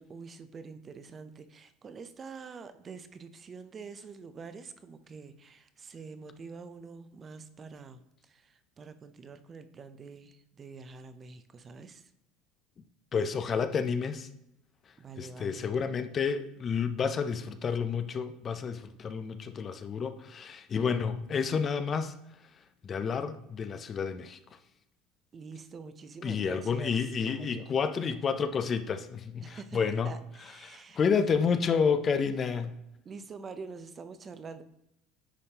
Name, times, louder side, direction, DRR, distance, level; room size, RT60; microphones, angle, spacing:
voice 1, 0.0-12.1 15.0-15.7 25.3-27.7 29.4-31.0 31.3-31.5 33.0-34.6, right 4 dB, 30° right, 10 dB, 0.5 m, -46 dB
voice 2, 13.1-14.3 15.2-22.1 22.8-24.4 26.2-30.1 30.6-32.8, left 6 dB, 30° left, 11 dB, 0.4 m, -30 dB
9.6 x 3.6 x 2.8 m, 0.85 s
supercardioid pair, 115°, 0 cm